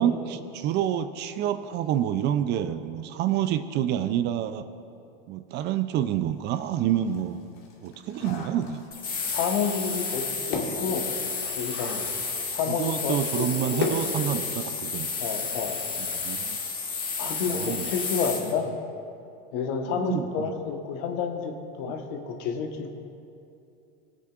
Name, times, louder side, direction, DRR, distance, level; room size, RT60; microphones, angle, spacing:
voice 1, 0.0-4.7 5.3-7.4 7.8-8.8 12.7-15.1 16.0-16.6 17.2-17.9 19.9-20.5 21.8-21.9, right 10 dB, 40° right, 11 dB, 0.5 m, -28 dB
sound 1, 6.3-6.4 6.8-14.9 15.2-15.3 15.6-15.8, left 4 dB, 80° left, 1.8 m, -37 dB
sound 2, 8.9-18.5, left 5 dB, 30° left, 1.5 m, -32 dB
voice 2, 9.3-11.1 11.5-12.1 12.5-13.9 15.2-15.8 17.2-18.7 19.5-23.0, left 5 dB, 60° left, 4 dB, 1.2 m, -30 dB
19.5 x 8.2 x 2.5 m, 2.6 s
supercardioid pair, 120°, 29 cm